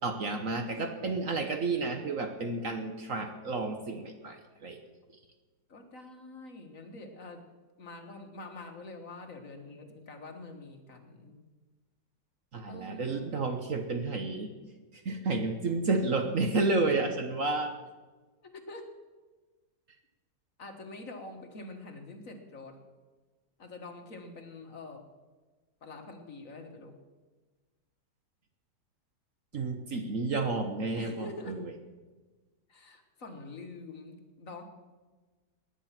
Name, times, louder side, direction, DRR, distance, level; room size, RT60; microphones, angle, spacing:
voice 1, 0.0-4.8 12.5-14.5 14.9-17.7 29.5-31.7, right 3 dB, 50° right, 6 dB, 1.3 m, -31 dB
voice 2, 5.7-7.5 7.8-11.4 12.7-13.3 18.4-18.9 20.6-22.8 23.6-25.1 25.8-27.0 29.5-29.6 30.9-31.6 32.7-34.6, left 2 dB, 50° left, 4 dB, 1.8 m, -46 dB
18.5 x 10.0 x 5.9 m, 1.3 s
omnidirectional pair, 1.9 m